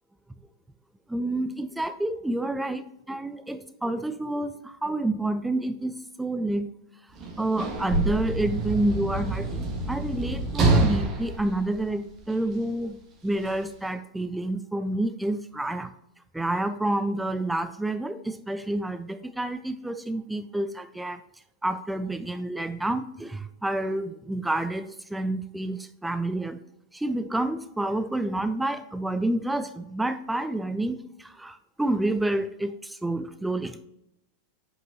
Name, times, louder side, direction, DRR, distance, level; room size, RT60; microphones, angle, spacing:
voice 1, 1.1-6.7 7.4-13.0 13.2-15.9 16.3-21.2 21.6-26.6 26.9-33.8, right 1 dB, 5° right, 11 dB, 0.3 m, -29 dB
Sliding door / Slam, 7.1-12.5 13.4-13.6, right 2 dB, 30° right, 1.5 m, -27 dB
7.8 x 5.3 x 2.8 m, 0.83 s
figure-of-eight pair, 90°, 0 cm